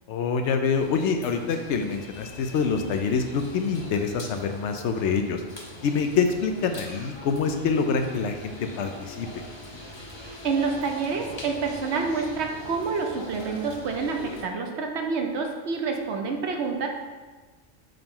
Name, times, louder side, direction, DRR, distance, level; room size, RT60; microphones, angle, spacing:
voice 1, 0.1-5.4 5.8-9.3, left 5 dB, 80° left, 6 dB, 0.9 m, -26 dB
sound 1, 0.7-14.4, left 1 dB, 30° left, 0.6 m, -42 dB
voice 2, 10.2-16.9, right 4 dB, 70° right, 3 dB, 1.0 m, -28 dB
8.7 x 3.0 x 3.8 m, 1.3 s
omnidirectional pair, 1.2 m